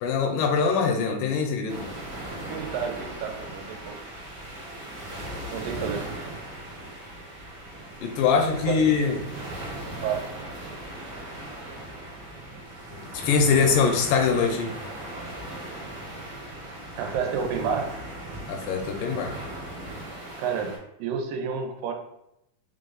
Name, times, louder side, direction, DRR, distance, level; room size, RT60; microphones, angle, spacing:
voice 1, 0.0-1.9 8.0-9.2 12.9-14.7 18.5-19.3, left 5 dB, 85° left, 3 dB, 2.2 m, -23 dB
sound 1, 1.7-20.8, right 1 dB, 65° right, 0.9 m, -38 dB
voice 2, 2.5-4.0 5.5-6.1 8.7-8.8 10.0-10.2 17.0-17.9 20.4-20.7 21.0-21.9, right 6 dB, 90° right, 4 dB, 2.2 m, -29 dB
5.3 x 2.0 x 3.8 m, 0.81 s
omnidirectional pair, 3.8 m